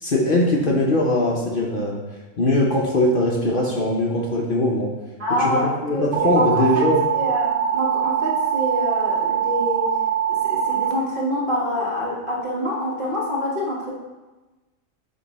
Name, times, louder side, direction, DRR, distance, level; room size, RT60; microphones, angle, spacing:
voice 1, 0.0-2.0 2.4-4.9 5.3-7.0, left 1 dB, 45° left, -2 dB, 0.9 m, -21 dB
voice 2, 5.2-6.9 7.1-9.9 10.3-13.9, left 1 dB, 40° right, -5 dB, 1.6 m, -26 dB
sound 1, 6.1-10.9, right 9 dB, 70° right, 1.1 m, -22 dB
9.3 x 3.1 x 4.1 m, 1.2 s
omnidirectional pair, 1.4 m